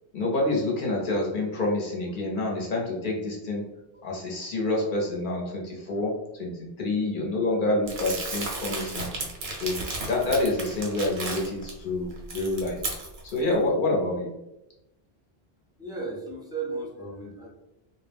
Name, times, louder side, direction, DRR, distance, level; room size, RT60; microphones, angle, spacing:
voice 1, 0.1-3.6 4.0-9.1 9.6-12.8 13.2-14.3, left 2 dB, 60° left, -2 dB, 0.7 m, -27 dB
Crumpling crinkling, 7.9-11.7 12.1-13.4, right 3 dB, 75° right, 0.9 m, -34 dB
voice 2, 15.8-17.5, right 3 dB, 5° right, -3 dB, 0.4 m, -35 dB
2.3 x 2.0 x 3.3 m, 0.92 s
omnidirectional pair, 1.0 m